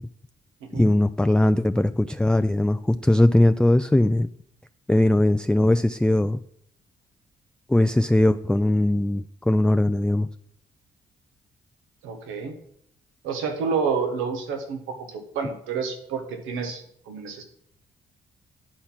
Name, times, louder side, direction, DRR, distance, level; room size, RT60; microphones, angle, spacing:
voice 1, 0.7-4.3 4.9-6.4 7.7-10.3, left 1 dB, 5° left, 9 dB, 0.3 m, -20 dB
voice 2, 12.0-12.6 13.2-17.4, right 5 dB, 80° right, 5 dB, 1.2 m, -29 dB
10.0 x 4.3 x 5.9 m, 0.68 s
hypercardioid pair, 45°, 20 cm